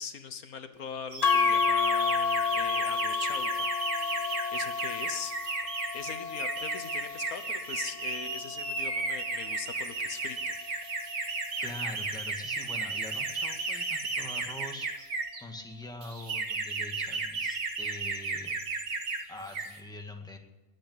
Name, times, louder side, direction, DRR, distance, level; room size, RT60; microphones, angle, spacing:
voice 1, 0.0-3.7 4.5-5.6 5.9-10.5, left 6 dB, 75° left, 9 dB, 1.6 m, -41 dB
sound 1, 1.1-15.4 16.0-19.2 19.5-19.8, right 3 dB, 80° right, 2.3 m, -34 dB
sound 2, 1.2-9.5, left 6 dB, 50° left, 0.5 m, -31 dB
voice 2, 11.6-18.5 19.3-20.4, left 1 dB, 5° left, 3 dB, 1.8 m, -43 dB
20.5 x 8.7 x 8.0 m, 1.1 s
omnidirectional pair, 1.5 m